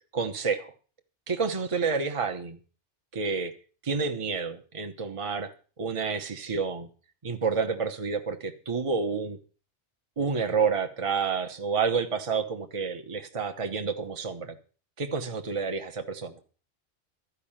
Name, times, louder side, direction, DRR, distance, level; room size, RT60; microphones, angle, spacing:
voice 1, 0.1-0.7 1.3-2.6 3.1-3.5 3.8-5.5 5.8-6.9 7.2-9.4 10.2-14.6 15.0-16.4, right 5 dB, 30° right, 5 dB, 1.1 m, -29 dB
13.5 x 5.5 x 8.7 m, 0.38 s
omnidirectional pair, 1.2 m